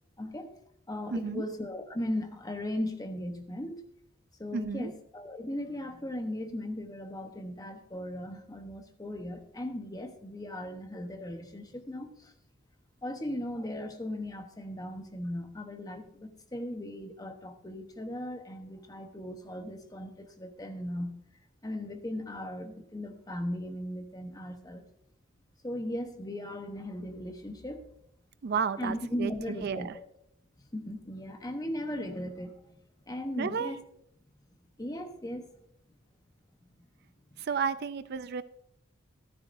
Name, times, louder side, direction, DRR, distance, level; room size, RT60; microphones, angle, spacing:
voice 1, 0.2-0.5 0.9-3.8 4.4-12.3 13.0-21.2 21.6-24.8 25.6-27.8 28.8-30.1 30.6-32.8 33.1-33.8 34.8-35.5 36.6-36.7 37.3-37.5, left 1 dB, 20° left, 1.0 m, -37 dB
voice 2, 1.1-1.4 4.5-4.9 28.4-29.3 29.6-29.9 33.4-33.7 37.4-38.4, right 6 dB, 50° right, 0.4 m, -32 dB
14.0 x 12.5 x 2.6 m
head